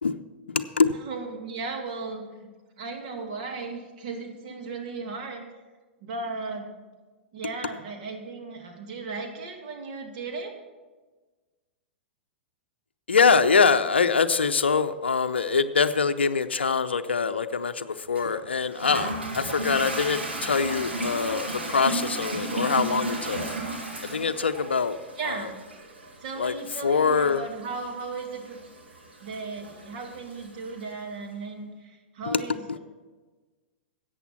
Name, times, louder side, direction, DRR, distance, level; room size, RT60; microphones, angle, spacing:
voice 1, 0.5-1.0 13.1-23.4 24.1-25.0 25.2-25.5 26.4-26.5 26.8-27.4 32.3-32.4 32.7-32.8, left 5 dB, 70° left, 9 dB, 0.6 m, -24 dB
voice 2, 1.0-2.2 2.8-5.4 6.0-6.7 7.3-10.5 25.2-25.5 26.2-28.6 29.2-32.8, right 4 dB, 45° right, 3 dB, 2.4 m, -36 dB
Toilet flush, 18.2-30.9, right 2 dB, 80° right, 2.8 m, -35 dB
14.0 x 8.8 x 5.8 m, 1.3 s
figure-of-eight pair, 105°, 6 cm